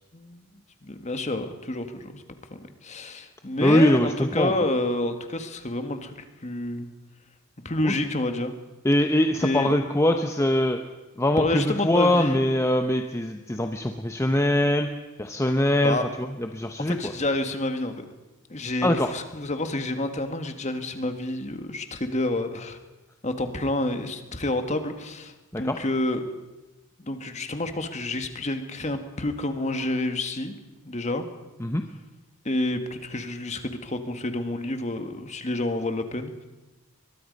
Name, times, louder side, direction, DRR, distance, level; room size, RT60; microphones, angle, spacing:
voice 1, 0.1-0.4 0.8-2.2 2.5-6.1 6.4-6.9 7.6-8.5 9.4-9.7 11.4-12.4 15.8-16.0 16.9-18.0 18.5-22.8 23.2-26.2 27.0-30.5 30.8-31.3 32.4-36.4, left 1 dB, 30° left, 7 dB, 1.7 m, -29 dB
voice 2, 3.6-4.6 7.8-7.9 8.8-10.8 11.2-14.9 15.2-17.1 18.8-19.1 25.5-25.8 31.6-31.8, left 1 dB, 15° left, 5 dB, 0.8 m, -23 dB
23.0 x 21.5 x 5.3 m, 1.1 s
head